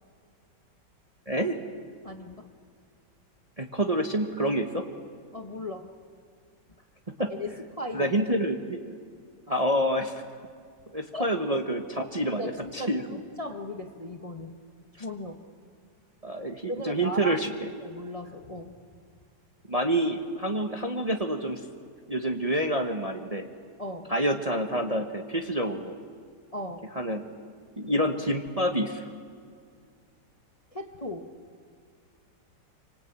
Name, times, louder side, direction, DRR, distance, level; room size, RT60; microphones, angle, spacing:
voice 1, 1.3-1.6 3.6-4.8 7.2-7.3 7.9-8.9 9.5-10.1 10.9-11.8 12.1-13.0 16.2-17.7 19.7-21.6 22.1-23.5 24.1-25.9 26.9-27.2 27.8-29.1, right 1 dB, 25° right, 4 dB, 1.2 m, -27 dB
voice 2, 2.0-2.5 5.3-5.9 7.3-8.1 9.5-9.6 11.1-11.6 12.4-14.6 14.9-15.4 16.7-17.4 17.8-18.7 23.8-24.1 26.5-26.9 30.7-31.3, left 1 dB, 20° left, 6 dB, 1.2 m, -37 dB
26.5 x 25.0 x 8.8 m, 2.1 s
omnidirectional pair, 1.9 m